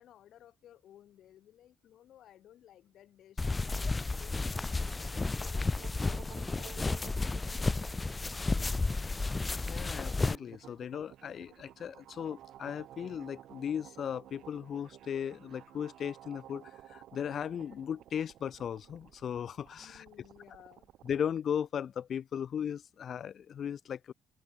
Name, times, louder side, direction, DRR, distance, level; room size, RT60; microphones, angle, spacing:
voice 1, 0.0-9.4 19.8-20.9, left 11 dB, 75° left, 2.8 m, -58 dB
sound 1, 3.4-10.4, left 3 dB, 25° left, 0.5 m, -32 dB
sound 2, 4.8-21.3, right 12 dB, 80° right, 4.6 m, -55 dB
voice 2, 9.6-20.0 21.0-24.1, left 8 dB, 60° left, 1.1 m, -37 dB
cardioid pair, 90°, 0 cm